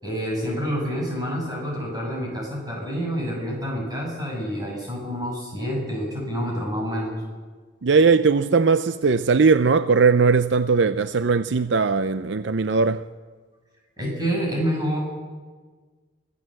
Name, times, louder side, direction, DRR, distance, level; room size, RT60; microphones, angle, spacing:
voice 1, 0.0-7.2 14.0-15.0, equal, 20° right, 7.3 m, -28 dB
voice 2, 7.8-13.0, right 4 dB, 70° right, 0.6 m, -19 dB
25.0 x 15.5 x 7.8 m
head